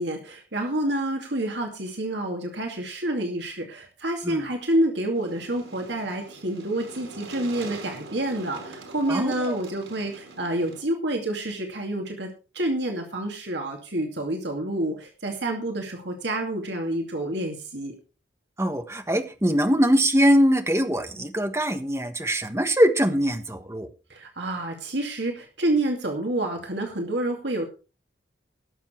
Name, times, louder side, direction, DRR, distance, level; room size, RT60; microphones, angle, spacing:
voice 1, 0.0-12.3 12.5-17.9 24.1-27.6, right 1 dB, 60° right, 3 dB, 2.4 m, -28 dB
sound 1, 5.1-10.8, right 2 dB, 90° right, 4.8 m, -43 dB
voice 2, 9.1-9.6 18.6-23.9, equal, 15° right, 7 dB, 1.3 m, -22 dB
19.0 x 7.3 x 4.5 m, 0.33 s
head